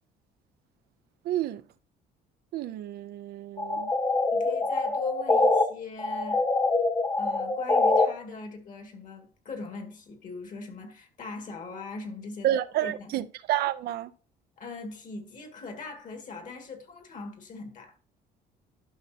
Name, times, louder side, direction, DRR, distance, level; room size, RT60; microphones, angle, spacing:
voice 1, 1.2-1.6 2.5-3.9 12.4-14.1, right 12 dB, 70° right, 0.5 m, -30 dB
sound 1, 3.6-5.6 6.0-8.1, left 3 dB, 20° left, 1.1 m, -24 dB
voice 2, 4.3-6.4 7.2-12.5 12.8-13.2 14.6-17.9, left 4 dB, 50° left, 2.0 m, -41 dB
12.0 x 5.5 x 2.8 m
cardioid pair, 110°, 17 cm